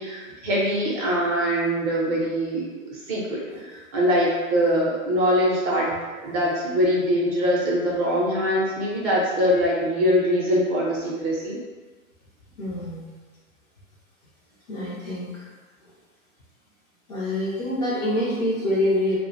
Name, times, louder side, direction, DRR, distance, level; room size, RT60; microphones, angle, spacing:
voice 1, 0.0-2.7 3.1-5.9 6.2-11.6, equal, 30° right, -5 dB, 0.5 m, -23 dB
voice 2, 12.6-13.0 14.7-15.5 17.1-19.2, left 1 dB, 30° left, -6 dB, 0.4 m, -26 dB
2.3 x 2.1 x 2.5 m, 1.4 s
hypercardioid pair, 125°, 42 cm